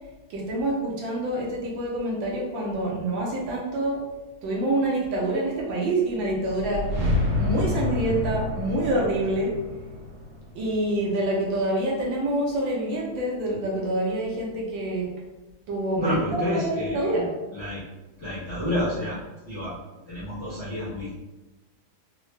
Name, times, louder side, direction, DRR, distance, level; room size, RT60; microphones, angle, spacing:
voice 1, 0.3-4.0 4.4-6.9 7.4-9.5 10.5-15.1 15.7-17.3, right 1 dB, 70° right, -3 dB, 1.2 m, -26 dB
sound 1, 6.2-11.3, left 2 dB, 50° right, 1.1 m, -29 dB
voice 2, 16.0-17.2 17.5-17.8 18.2-19.2 19.4-19.7 20.1-21.1, equal, 60° left, -10 dB, 0.7 m, -29 dB
3.7 x 2.1 x 3.1 m, 1.1 s
omnidirectional pair, 2.4 m